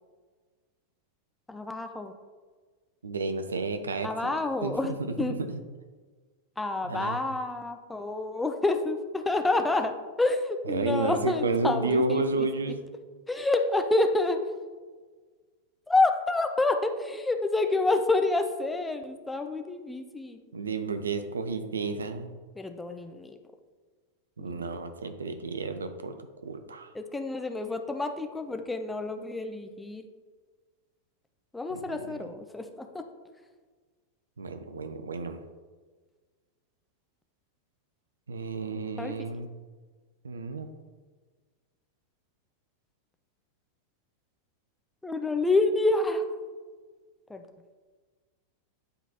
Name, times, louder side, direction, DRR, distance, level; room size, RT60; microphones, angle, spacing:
voice 1, 1.5-2.1 4.0-5.3 6.6-9.9 10.2-12.2 13.3-14.4 15.9-20.4 22.6-23.4 24.4-24.6 26.9-30.1 31.5-32.9 39.0-39.1 45.0-46.3 47.3-47.4, left 2 dB, 5° left, 6 dB, 0.5 m, -28 dB
voice 2, 3.0-4.3 4.6-4.7 5.2-5.6 6.8-7.2 10.7-12.8 20.5-22.3 24.4-26.2 26.4-26.9 31.7-32.3 34.4-35.4 38.3-39.5 40.2-40.7, right 3 dB, 70° right, 8 dB, 0.5 m, -31 dB
9.2 x 3.8 x 2.9 m, 1.4 s
figure-of-eight pair, 90°, 0 cm